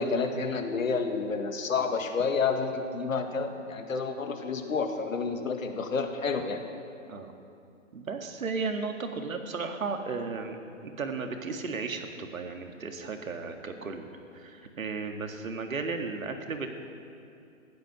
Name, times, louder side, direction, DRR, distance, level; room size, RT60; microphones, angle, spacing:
voice 1, 0.0-6.6, left 4 dB, 75° left, 6 dB, 1.8 m, -29 dB
voice 2, 7.9-10.6 10.8-16.8, right 4 dB, 85° right, 5 dB, 1.9 m, -35 dB
15.5 x 11.5 x 6.1 m, 2.5 s
hypercardioid pair, 160°, 40 cm